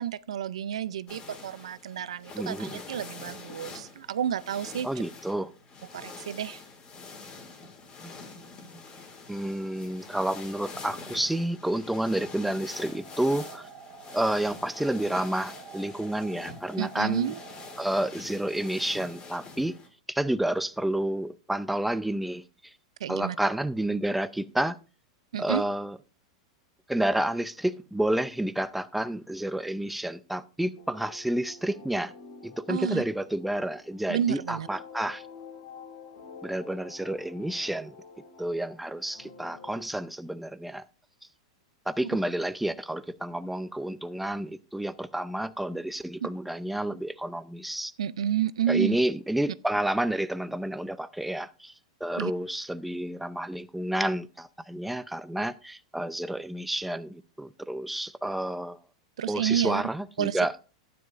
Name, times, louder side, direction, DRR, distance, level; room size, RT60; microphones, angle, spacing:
voice 1, 0.0-4.9 5.9-6.6 16.8-17.4 23.0-23.4 25.3-25.6 32.7-33.0 34.1-34.7 46.2-46.3 48.0-49.0 52.2-52.3 59.2-59.8 60.2-60.5, right 10 dB, 85° right, 0.4 m, -30 dB
sound 1, 1.1-19.9, left 4 dB, 30° left, 2.6 m, -45 dB
voice 2, 2.3-2.8 4.8-5.5 9.3-13.7 14.1-17.3 17.8-19.8 20.1-22.7 23.1-24.8 25.4-26.0 26.9-32.1 32.4-35.2 36.4-37.9 38.4-40.8 41.9-47.9 48.7-51.7 52.0-58.8 59.3-60.5, right 1 dB, 5° right, 0.5 m, -30 dB
sound 2, 12.9-17.9, right 6 dB, 30° right, 1.9 m, -48 dB
sound 3, 30.8-39.9, left 4 dB, 70° left, 5.1 m, -49 dB
12.0 x 9.7 x 2.5 m
hypercardioid pair, 120°, 3 cm